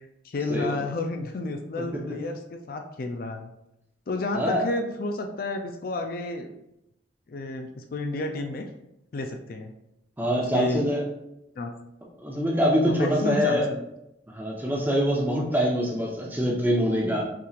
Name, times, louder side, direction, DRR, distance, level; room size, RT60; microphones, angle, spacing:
voice 1, 0.0-3.5 4.1-6.5 7.3-8.7 9.1-9.7 10.4-10.8 11.6-11.7 12.9-13.8, left 2 dB, 50° left, 5 dB, 0.4 m, -31 dB
voice 2, 10.2-11.0 12.2-13.7 14.3-17.2, equal, 10° right, -2 dB, 0.7 m, -24 dB
5.8 x 3.1 x 2.4 m, 0.84 s
head